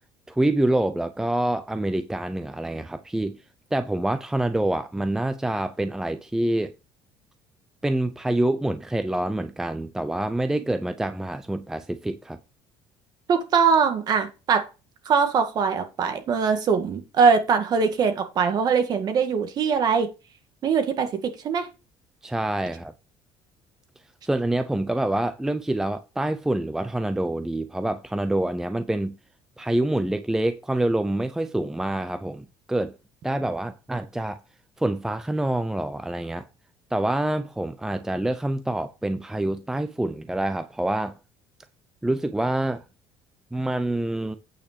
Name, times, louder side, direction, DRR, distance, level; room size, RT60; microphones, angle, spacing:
voice 1, 0.3-3.4 3.7-6.7 7.8-12.4 22.2-22.9 24.2-29.2 29.6-32.9 33.2-34.4 34.8-36.4 36.9-41.1 42.0-42.8 43.5-44.4, right 1 dB, 5° right, 0.5 m, -26 dB
voice 2, 13.3-14.6 15.1-20.1 20.6-21.7, right 6 dB, 40° right, 1.9 m, -22 dB
8.8 x 5.5 x 5.1 m
cardioid pair, 150°, 10 cm